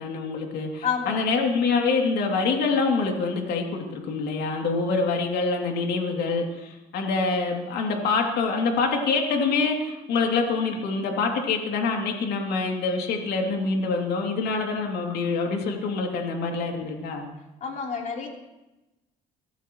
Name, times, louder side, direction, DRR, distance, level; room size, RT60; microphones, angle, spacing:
voice 1, 0.0-17.3, left 4 dB, 75° left, 1 dB, 2.8 m, -25 dB
voice 2, 0.8-1.3 17.6-18.3, left 6 dB, 50° left, -1 dB, 3.6 m, -29 dB
24.5 x 14.5 x 3.1 m, 1.0 s
cardioid pair, 110°, 17 cm